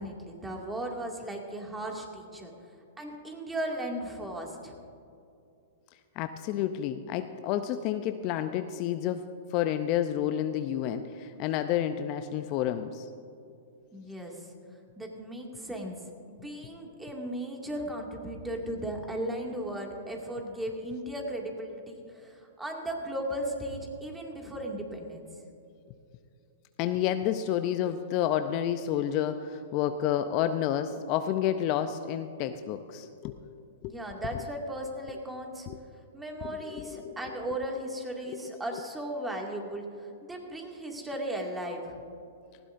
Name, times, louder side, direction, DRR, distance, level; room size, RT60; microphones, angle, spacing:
voice 1, 0.0-2.5 3.0-4.8 13.9-14.5 15.0-25.3 33.9-35.7 36.1-42.0, right 1 dB, 10° right, 0 dB, 2.2 m, -36 dB
voice 2, 6.2-13.1 26.8-33.4 33.8-33.9 35.7-35.8 36.4-36.6 36.9-37.4, left 10 dB, 40° left, 9 dB, 0.5 m, -30 dB
19.0 x 15.5 x 2.6 m, 2.6 s
hypercardioid pair, 115°, 0 cm